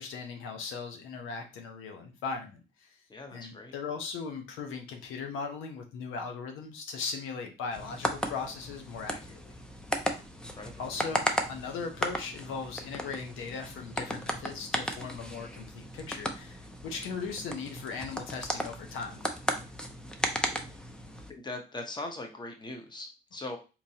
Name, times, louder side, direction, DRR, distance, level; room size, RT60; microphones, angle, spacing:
voice 1, 0.0-3.0 3.3-9.6 10.8-19.2, left 5 dB, 90° left, 4 dB, 0.8 m, -38 dB
voice 2, 3.1-3.7 10.5-10.8 21.3-23.6, left 2 dB, 20° left, 3 dB, 0.9 m, -40 dB
sound 1, 7.7-21.3, equal, 5° left, 0.5 m, -35 dB
3.9 x 3.0 x 2.8 m, 0.31 s
cardioid pair, 90°, 20 cm